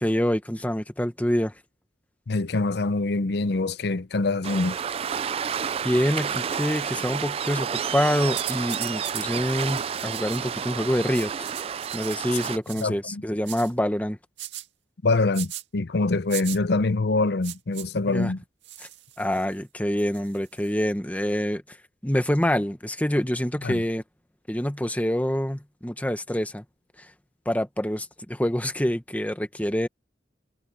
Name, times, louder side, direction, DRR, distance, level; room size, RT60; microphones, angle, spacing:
voice 1, 0.0-1.5 5.8-11.3 11.9-14.2 18.1-18.3 19.2-21.8 22.0-24.0 24.5-26.6 27.4-29.9, equal, 10° left, 1.4 m, -26 dB
voice 2, 2.3-4.8 12.8-13.2 15.0-18.4 23.6-23.8, left 3 dB, 65° left, 0.7 m, -25 dB
Waves surf, 4.4-12.6, right 7 dB, 35° right, 0.3 m, -30 dB
sound 1, 8.4-9.3 9.7-10.6 11.1-12.9 13.5-13.7 14.4-14.7 15.3-15.6 16.3-16.6 17.4-17.9 18.6-19.5 20.1-20.7, right 13 dB, 90° right, 1.9 m, -38 dB
head